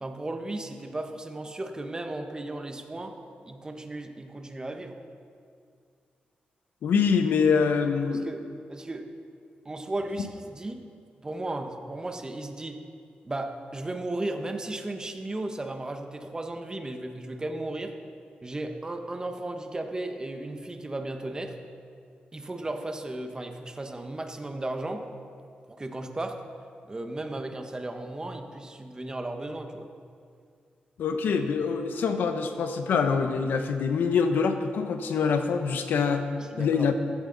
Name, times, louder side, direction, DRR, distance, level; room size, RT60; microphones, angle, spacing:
voice 1, 0.0-5.0 8.1-8.4 8.7-9.0 9.6-10.8 11.2-12.8 13.2-18.0 18.4-21.6 22.3-25.1 25.7-26.4 26.9-29.9 36.4-36.9, right 2 dB, 25° right, 5 dB, 1.3 m, -35 dB
voice 2, 6.8-8.3 31.0-36.3 36.6-36.9, left 5 dB, 90° left, 6 dB, 1.1 m, -25 dB
15.5 x 15.0 x 4.1 m, 2.3 s
cardioid pair, 95°, 3 cm